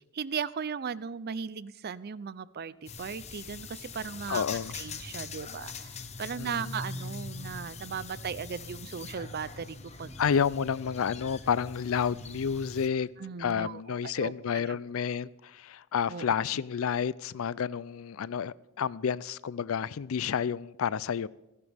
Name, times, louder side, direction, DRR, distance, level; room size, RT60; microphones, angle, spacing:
voice 1, 0.1-4.4 4.7-10.3 13.2-14.8 16.1-16.3, right 6 dB, 45° right, 0.5 m, -37 dB
sound 1, 2.9-12.9, left 4 dB, 30° left, 1.0 m, -42 dB
voice 2, 4.3-4.7 6.4-6.8 10.2-13.1 13.4-21.3, left 7 dB, 70° left, 0.4 m, -30 dB
28.5 x 11.5 x 3.5 m
head